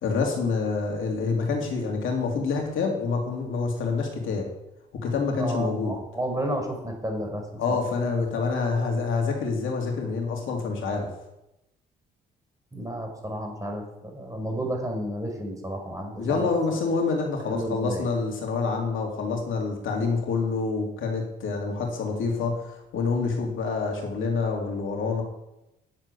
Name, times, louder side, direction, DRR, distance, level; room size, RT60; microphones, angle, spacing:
voice 1, 0.0-4.5 5.0-6.0 7.6-11.1 16.2-22.6 22.9-25.2, left 4 dB, 70° left, 1 dB, 3.0 m, -27 dB
voice 2, 5.4-7.8 12.7-16.5 17.5-18.1, right 1 dB, 15° right, 2 dB, 5.3 m, -32 dB
10.5 x 7.7 x 8.4 m, 0.89 s
hypercardioid pair, 55°, 21 cm